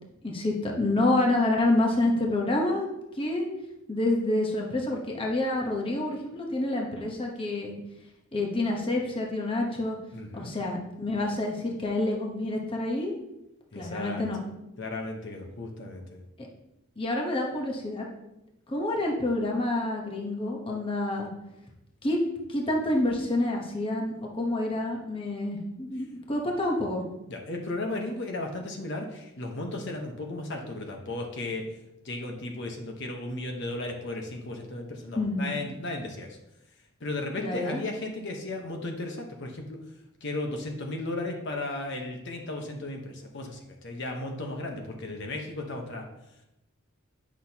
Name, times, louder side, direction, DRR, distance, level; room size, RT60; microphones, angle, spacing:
voice 1, 0.2-2.9 3.2-3.5 3.9-7.7 8.3-10.0 10.3-13.1 13.7-14.4 16.4-16.5 17.0-18.1 18.7-21.3 22.0-22.2 22.5-27.0 35.2-35.5 37.4-37.8, left 2 dB, 25° left, 0 dB, 1.0 m, -28 dB
voice 2, 10.1-10.5 13.7-14.2 14.8-16.2 27.3-31.7 32.0-36.4 37.0-39.8 40.2-46.1, left 2 dB, 55° left, 2 dB, 1.1 m, -35 dB
10.0 x 6.1 x 2.9 m, 0.89 s
head